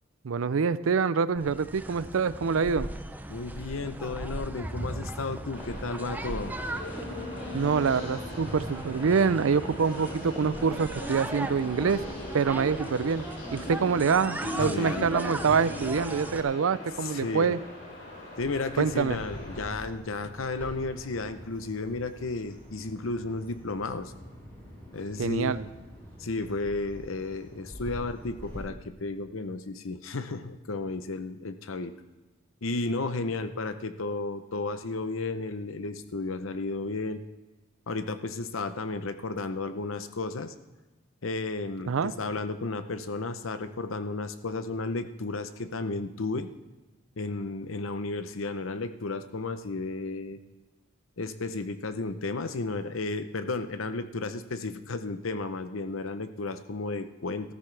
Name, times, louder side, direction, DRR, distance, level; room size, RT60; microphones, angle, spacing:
voice 1, 0.2-2.9 7.5-12.0 12.3-13.2 13.5-17.6 18.8-19.2 25.2-25.6 41.9-42.1, right 5 dB, 80° right, 16 dB, 0.5 m, -26 dB
sound 1, 1.4-16.4, right 1 dB, 10° right, 0.4 m, -38 dB
voice 2, 3.3-6.6 6.9-7.0 14.6-15.1 17.0-17.6 18.4-24.1 24.9-25.6 26.2-31.9 32.6-37.2 37.9-40.5 41.2-46.5 47.2-50.4 51.2-57.5, left 3 dB, 80° left, 10 dB, 0.8 m, -33 dB
sound 2, 5.5-19.7, left 1 dB, 60° left, 3.6 m, -40 dB
Bird vocalization bird call bird song, 18.4-28.6, equal, 10° left, 4.7 m, -46 dB
14.5 x 13.5 x 3.4 m, 1.2 s
head